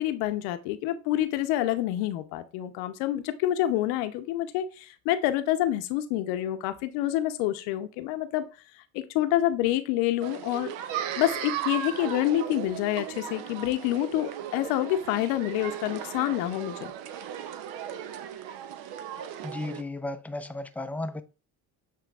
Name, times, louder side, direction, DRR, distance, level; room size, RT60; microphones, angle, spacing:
voice 1, 0.0-8.4 8.9-10.7 11.2-16.9, left 13 dB, 85° left, 0.7 m, -27 dB
sound 1, 10.2-19.8, right 10 dB, 75° right, 0.7 m, -36 dB
voice 2, 19.4-21.2, left 2 dB, 5° left, 0.3 m, -34 dB
7.5 x 3.1 x 2.3 m
supercardioid pair, 75°, 45 cm